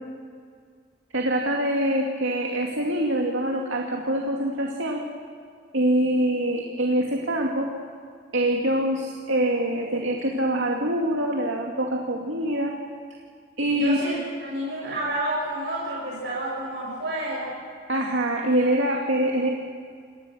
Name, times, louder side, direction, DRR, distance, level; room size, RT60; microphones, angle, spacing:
voice 1, 1.1-5.0 5.7-7.7 8.3-12.7 13.6-14.0 17.9-19.5, right 1 dB, 85° right, 0 dB, 2.5 m, -24 dB
voice 2, 13.7-17.5, right 1 dB, 60° right, -5 dB, 6.8 m, -30 dB
28.0 x 20.5 x 6.5 m, 2.1 s
head